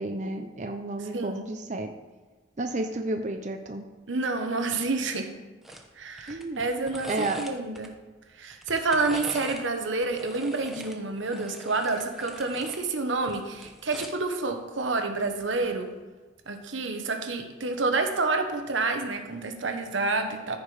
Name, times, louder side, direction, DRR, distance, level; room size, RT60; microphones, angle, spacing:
voice 1, 0.0-1.9 2.6-3.8 6.3-6.6 7.1-7.4, right 2 dB, 40° right, 5 dB, 0.6 m, -31 dB
voice 2, 1.0-1.4 4.1-5.3 6.0-7.9 8.4-15.9 16.5-20.6, right 3 dB, 80° right, 6 dB, 1.1 m, -29 dB
sound 1, 5.6-5.9 6.2-7.9 8.5-9.7 10.0-12.8 13.2-14.3 15.5-15.7, equal, ahead, 0.8 m, -42 dB
14.0 x 5.1 x 4.9 m, 1.3 s
head